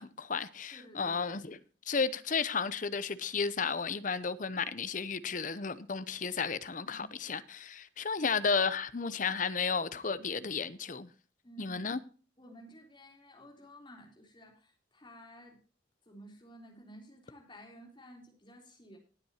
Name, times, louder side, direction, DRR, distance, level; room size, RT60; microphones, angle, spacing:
voice 1, 0.0-1.6 1.9-11.1 11.6-12.0, left 5 dB, 40° left, 0.7 m, -33 dB
voice 2, 0.7-1.5 6.8-7.1 11.4-11.8 12.4-15.6 16.1-19.0, equal, 25° left, 3.6 m, -53 dB
19.0 x 8.5 x 2.9 m
head